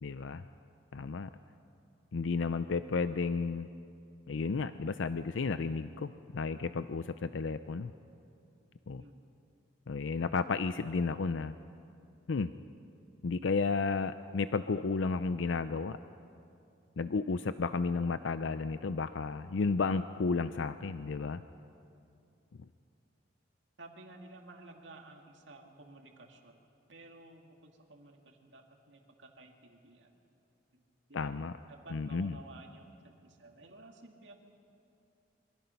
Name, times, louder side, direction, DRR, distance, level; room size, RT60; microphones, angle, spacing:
voice 1, 0.0-0.4 0.9-1.3 2.1-3.7 4.3-7.9 8.9-9.0 9.9-11.5 12.3-12.5 13.2-16.0 17.0-21.4 31.1-31.5 31.9-32.4, left 4 dB, 85° left, 11 dB, 0.5 m, -32 dB
voice 2, 23.8-26.6 26.9-30.2 30.7-30.8 31.1-31.4 31.7-34.3, right 2 dB, 75° right, 2 dB, 2.2 m, -54 dB
25.5 x 23.5 x 5.7 m, 2.6 s
head